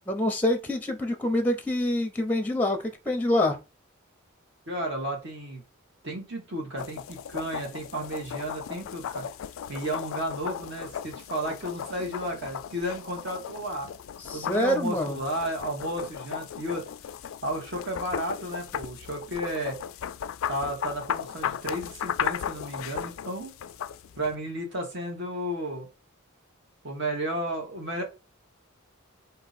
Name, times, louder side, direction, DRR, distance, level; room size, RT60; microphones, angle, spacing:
voice 1, 0.1-3.6 14.2-15.2, left 1 dB, 10° left, 0.6 m, -26 dB
voice 2, 4.7-5.6 6.0-9.3 9.7-13.9 14.3-16.8 17.4-19.8 20.5-23.5 24.2-25.9 26.8-28.0, right 1 dB, 55° right, 1.5 m, -33 dB
sound 1, 6.8-24.3, left 9 dB, 75° left, 0.3 m, -36 dB
4.1 x 2.9 x 4.1 m
head